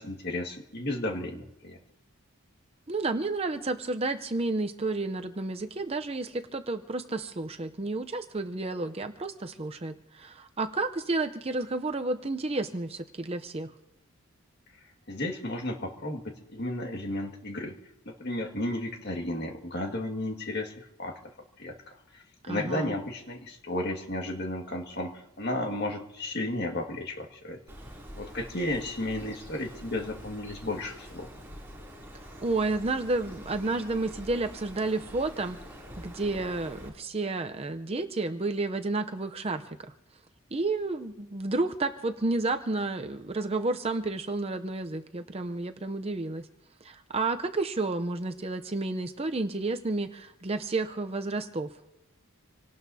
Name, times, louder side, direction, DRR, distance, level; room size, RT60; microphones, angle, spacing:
voice 1, 0.0-1.8 15.1-17.7 18.1-21.2 21.6-27.6 28.2-31.3, left 1 dB, 45° left, 2 dB, 1.8 m, -33 dB
voice 2, 2.9-13.7 22.4-22.9 32.4-35.6 36.0-39.9 40.5-46.5 46.8-51.7, right 2 dB, 25° right, 7 dB, 0.6 m, -31 dB
Bird, 27.7-36.9, equal, 10° right, 3.0 m, -46 dB
27.0 x 18.0 x 2.7 m, 0.91 s
head